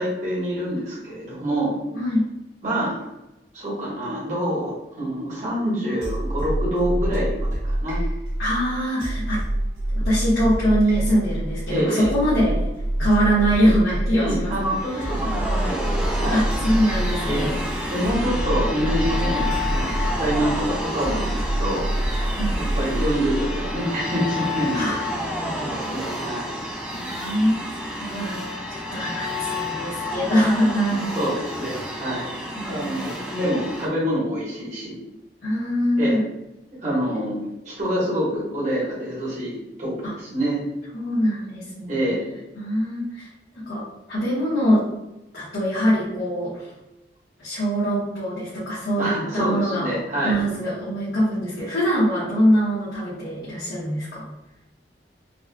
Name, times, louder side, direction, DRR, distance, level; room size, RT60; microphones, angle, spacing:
voice 1, 0.0-1.8 2.6-3.0 3.5-8.0 11.7-12.1 14.2-16.4 17.3-17.5 17.9-21.9 22.2-26.5 30.9-32.4 32.6-35.0 36.0-36.2 36.8-37.4 37.6-40.6 41.9-42.3 49.0-50.4, equal, 45° right, -8 dB, 1.2 m, -26 dB
sound 1, 6.0-23.8, right 1 dB, 75° right, 1.3 m, -26 dB
voice 2, 8.4-9.4 10.0-12.6 13.0-14.5 16.3-17.5 22.4-22.5 24.7-25.0 26.9-27.6 28.0-28.4 28.7-31.1 32.6-33.2 35.4-36.2 40.0-40.1 40.9-41.9 42.6-43.3 43.7-44.8 45.3-46.7 47.4-50.0 50.2-54.2, equal, 75° left, -10 dB, 1.1 m, -23 dB
sound 2, 14.4-33.9, left 1 dB, 5° right, 0.5 m, -30 dB
4.1 x 2.4 x 2.2 m, 0.94 s
head